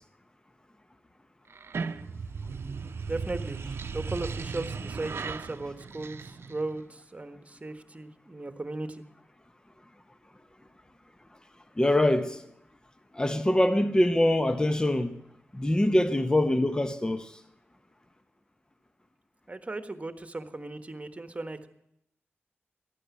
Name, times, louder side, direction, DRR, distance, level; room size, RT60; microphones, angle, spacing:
sound 1, 1.5-6.8, right 5 dB, 65° right, 0.7 m, -36 dB
voice 1, 3.1-3.6 3.9-9.0 19.5-21.7, right 2 dB, 30° right, 1.5 m, -37 dB
voice 2, 11.8-12.4 13.1-15.1 15.5-17.3, left 1 dB, 20° left, 1.0 m, -24 dB
14.5 x 11.0 x 8.4 m
cardioid pair, 45°, 4 cm